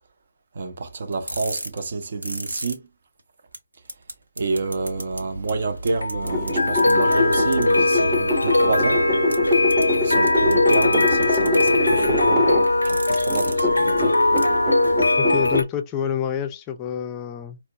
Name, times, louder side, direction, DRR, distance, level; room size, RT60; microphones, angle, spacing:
voice 1, 0.5-2.8 4.4-9.0 10.0-12.4 12.8-14.2, right 3 dB, 50° right, 0.7 m, -28 dB
sound 1, 1.1-2.7 3.2-3.3 3.5-3.6 3.9-4.1 4.4-5.2 5.5-5.6 5.9-6.5 6.8-7.6 9.3-9.4 9.7-9.8 10.3-11.7 12.6-13.6 13.9-14.0 14.4-14.5, right 1 dB, 85° right, 0.9 m, -32 dB
sound 2, 4.6-15.6, left 2 dB, 85° left, 0.5 m, -21 dB
sound 3, 6.2-12.7 13.1-15.6, left 2 dB, 10° right, 0.8 m, -24 dB
voice 2, 15.2-17.6, left 8 dB, 20° left, 0.4 m, -27 dB
4.3 x 2.0 x 2.5 m
figure-of-eight pair, 150°, 0 cm